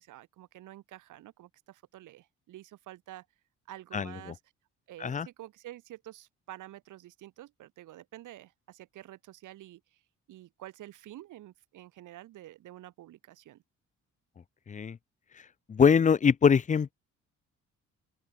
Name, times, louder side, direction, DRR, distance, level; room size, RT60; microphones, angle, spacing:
voice 1, 0.0-3.3 3.7-4.4 4.9-10.0 10.3-13.6, right 14 dB, 85° right, 4.1 m, -49 dB
voice 2, 15.7-16.9, left 6 dB, 25° left, 0.5 m, -23 dB
open air
cardioid pair, 90°, 30 cm